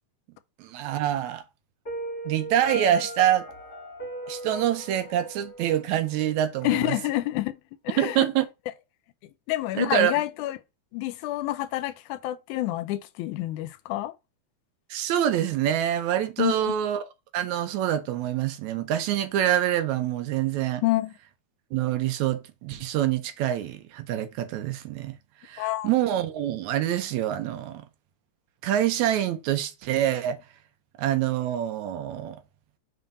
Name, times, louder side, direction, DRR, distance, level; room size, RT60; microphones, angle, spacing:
voice 1, 0.6-1.4 2.3-3.5 4.3-7.0 8.0-8.5 9.7-10.1 14.9-17.1 17.3-20.8 21.7-25.1 25.4-27.9 28.6-30.4 31.0-32.4, right 11 dB, 80° right, 2.0 m, -26 dB
Piano, 1.8-6.8, equal, 20° left, 1.7 m, -38 dB
voice 2, 6.6-7.5 7.9-8.2 9.5-10.6 10.9-14.1 16.4-16.7 20.8-21.1 25.6-25.9, left 16 dB, 85° left, 2.0 m, -28 dB
5.4 x 3.4 x 5.2 m
omnidirectional pair, 3.4 m